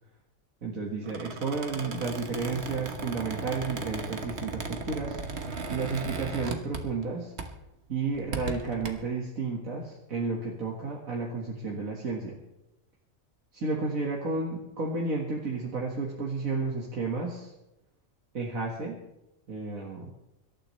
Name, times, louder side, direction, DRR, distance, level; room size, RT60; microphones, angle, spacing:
voice 1, 0.6-5.2 5.7-7.3 7.9-12.4 13.5-17.5 18.3-19.0 19.5-20.1, right 3 dB, 85° right, -3 dB, 2.3 m, -32 dB
Squeak, 1.0-7.1 7.4-7.6 8.1-8.9, right 4 dB, 55° right, 1.5 m, -37 dB
25.0 x 12.5 x 3.3 m, 0.90 s
omnidirectional pair, 1.4 m